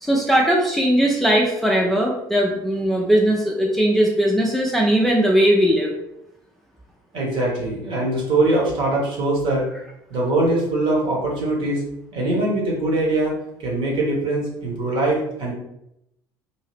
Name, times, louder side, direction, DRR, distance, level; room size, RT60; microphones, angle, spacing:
voice 1, 0.0-5.9, right 1 dB, ahead, -1 dB, 0.5 m, -19 dB
voice 2, 7.1-9.7 10.1-11.8 12.1-15.5, right 2 dB, 45° right, -2 dB, 1.2 m, -22 dB
2.8 x 2.8 x 3.1 m, 0.82 s
figure-of-eight pair, 60°, 12 cm